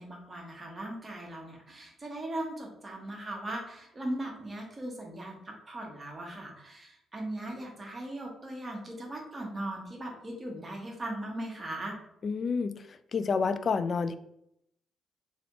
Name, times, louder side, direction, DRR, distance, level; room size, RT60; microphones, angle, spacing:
voice 1, 0.0-11.9, right 1 dB, 30° right, 0 dB, 1.4 m, -39 dB
voice 2, 12.2-12.8 13.1-14.2, left 5 dB, 50° left, 10 dB, 0.3 m, -29 dB
3.4 x 3.3 x 3.0 m, 0.75 s
hypercardioid pair, 40°, 0 cm